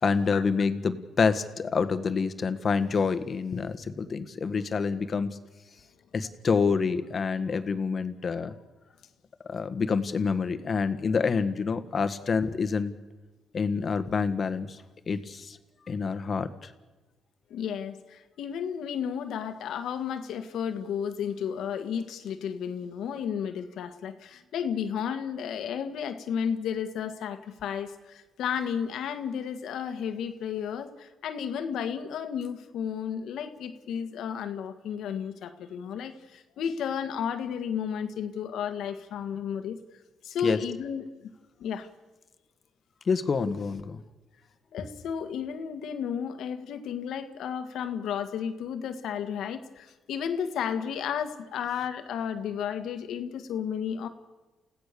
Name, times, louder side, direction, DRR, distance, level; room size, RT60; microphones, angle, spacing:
voice 1, 0.0-5.3 6.1-8.5 9.5-12.9 13.5-14.8 15.1-15.6 15.9-16.7 40.4-40.6 43.0-44.0, left 5 dB, 45° left, 1.6 m, -27 dB
voice 2, 17.5-39.8 40.2-41.3 41.6-41.9 44.7-54.1, left 8 dB, 75° left, 1.8 m, -33 dB
29.5 x 16.0 x 6.9 m
cardioid pair, 90°, 0 cm